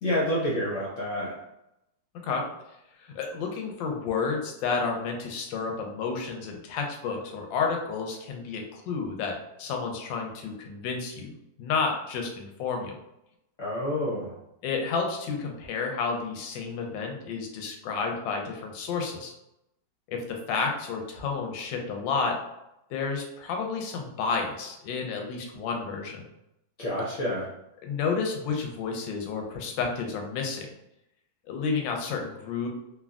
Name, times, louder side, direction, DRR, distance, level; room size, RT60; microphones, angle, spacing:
voice 1, 0.0-1.3 13.6-14.3 26.8-27.5, left 1 dB, 65° left, -5 dB, 0.8 m, -28 dB
voice 2, 3.0-12.9 14.6-19.3 20.1-22.4 22.9-26.3 27.8-30.7 31.5-32.7, left 5 dB, 90° left, 2 dB, 1.3 m, -31 dB
3.4 x 2.2 x 2.3 m, 0.85 s
omnidirectional pair, 2.0 m